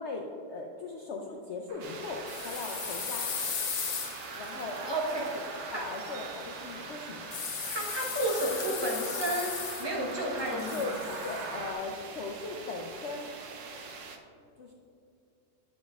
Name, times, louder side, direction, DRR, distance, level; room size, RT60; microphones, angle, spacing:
voice 1, 0.0-3.3 4.3-4.8 5.1-5.3 5.7-7.3 10.5-10.9 11.2-13.3 14.6-14.7, left 3 dB, 70° left, 0 dB, 0.6 m, -38 dB
sound 1, 1.7-11.7, right 3 dB, 80° right, 1.4 m, -43 dB
sound 2, 1.8-14.2, right 5 dB, 60° right, 0.9 m, -45 dB
sound 3, 2.3-5.3 7.3-10.1 10.4-11.5, left 7 dB, 85° left, 1.5 m, -36 dB
voice 2, 4.8-5.2 5.7-5.8 7.7-11.0, right 1 dB, 20° right, -2 dB, 0.9 m, -32 dB
10.0 x 7.4 x 2.3 m, 2.5 s
omnidirectional pair, 1.8 m